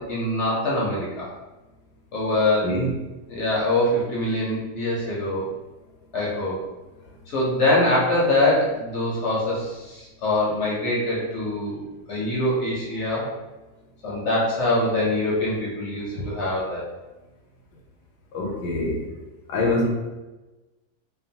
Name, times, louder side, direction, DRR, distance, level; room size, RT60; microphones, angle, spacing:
voice 1, 0.0-1.3 2.1-2.7 3.3-5.5 6.1-6.6 7.3-13.3 14.0-16.8, left 1 dB, 60° left, -6 dB, 0.8 m, -24 dB
voice 2, 18.3-19.0 19.5-19.9, left 1 dB, 85° left, 0 dB, 1.2 m, -24 dB
2.9 x 2.2 x 2.7 m, 1.1 s
omnidirectional pair, 1.7 m